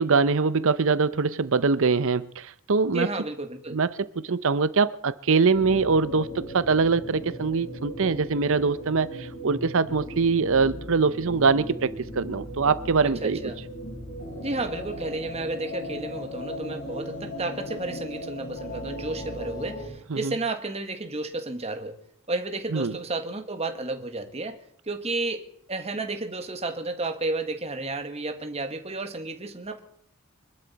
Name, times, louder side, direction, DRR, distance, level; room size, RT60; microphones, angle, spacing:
voice 1, 0.0-3.1 3.7-13.4 20.1-20.3 22.7-23.0, right 4 dB, 60° right, 0.7 m, -23 dB
voice 2, 2.9-3.8 13.0-13.6 14.4-22.0 22.3-24.6 24.9-29.8, right 2 dB, 30° right, 1.4 m, -32 dB
sound 1, 5.5-19.9, equal, 50° left, 8.0 m, -37 dB
24.5 x 12.5 x 4.1 m
head